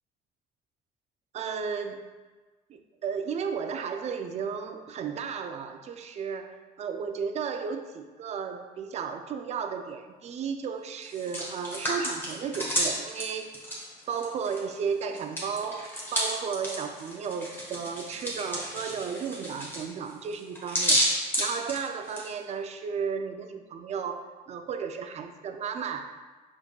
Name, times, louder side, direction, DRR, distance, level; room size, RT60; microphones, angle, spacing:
voice 1, 1.3-2.0 2.7-13.5 14.1-26.2, right 6 dB, 40° right, 7 dB, 0.4 m, -34 dB
Hands, 11.0-14.7 15.0-22.3, equal, 15° left, 1.1 m, -31 dB
5.2 x 3.5 x 2.2 m, 1.3 s
cardioid pair, 110°, 17 cm